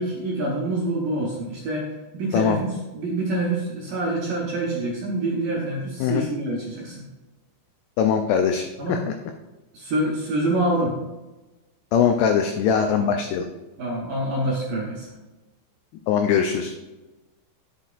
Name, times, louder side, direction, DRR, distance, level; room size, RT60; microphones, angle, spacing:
voice 1, 0.0-1.9 2.1-7.0 8.8-9.0 9.7-10.9 13.0-13.1 13.8-15.1, right 1 dB, 70° right, -3 dB, 2.1 m, -26 dB
voice 2, 8.0-8.6 8.9-9.0 11.9-13.5 16.1-16.7, left 7 dB, 85° left, 5 dB, 2.3 m, -21 dB
11.5 x 7.5 x 2.5 m, 1.1 s
omnidirectional pair, 5.5 m